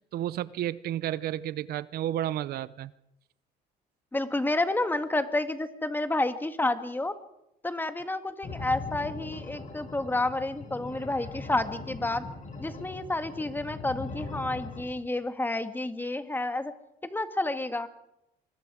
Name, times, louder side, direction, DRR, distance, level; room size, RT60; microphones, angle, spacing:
voice 1, 0.1-2.9, right 12 dB, 65° right, 0.6 m, -31 dB
voice 2, 4.1-7.2 7.6-12.3 12.6-16.7 17.0-17.9, left 2 dB, 10° left, 1.6 m, -30 dB
sound 1, 8.4-14.8, left 3 dB, 45° left, 5.5 m, -40 dB
25.0 x 21.5 x 4.9 m
cardioid pair, 110°, 17 cm